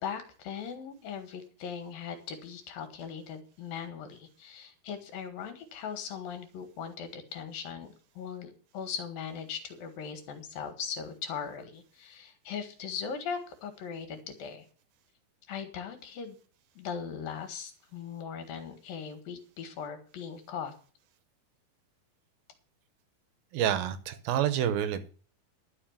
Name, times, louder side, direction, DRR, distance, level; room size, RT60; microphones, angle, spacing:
voice 1, 0.0-14.7 15.5-16.4 16.7-20.7, left 7 dB, 70° left, 8 dB, 3.4 m, -39 dB
voice 2, 23.5-25.1, right 10 dB, 80° right, 12 dB, 2.9 m, -28 dB
11.5 x 5.7 x 8.7 m, 0.40 s
omnidirectional pair, 4.3 m